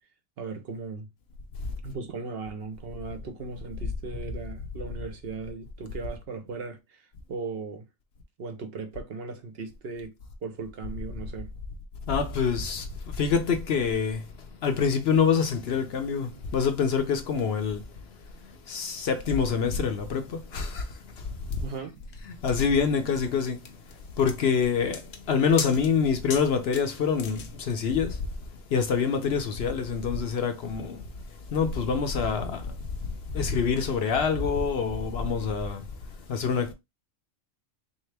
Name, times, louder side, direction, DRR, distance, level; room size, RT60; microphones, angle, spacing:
voice 1, 0.4-1.1 1.8-7.9 8.4-10.1 10.4-11.5 21.6-22.0, right 4 dB, 60° right, 0.9 m, -37 dB
voice 2, 12.1-12.8 13.2-14.2 14.6-17.8 18.7-20.8 22.4-23.6 24.2-25.0 25.3-28.1 28.7-31.0 31.5-32.6 33.3-35.8 36.3-36.7, left 6 dB, 60° left, 0.8 m, -25 dB
sound 1, 21.5-27.8, left 6 dB, 85° left, 1.1 m, -40 dB
3.7 x 2.8 x 3.3 m
omnidirectional pair, 1.3 m